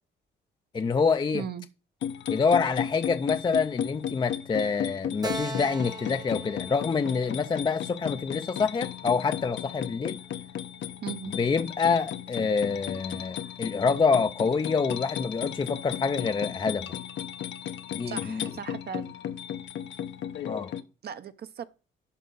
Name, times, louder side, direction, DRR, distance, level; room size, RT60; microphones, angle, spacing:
voice 1, 0.7-1.4 2.3-10.2 11.3-16.9 17.9-18.5 20.5-20.7, left 5 dB, 25° left, 0.4 m, -26 dB
voice 2, 1.3-1.7 11.0-11.3 18.1-19.2 21.0-21.6, right 9 dB, 55° right, 0.8 m, -38 dB
sound 1, 2.0-20.8, left 10 dB, 70° left, 0.7 m, -35 dB
Keyboard (musical), 5.2-8.7, right 3 dB, 20° right, 0.9 m, -40 dB
11.5 x 4.6 x 3.9 m
cardioid pair, 90°, 20 cm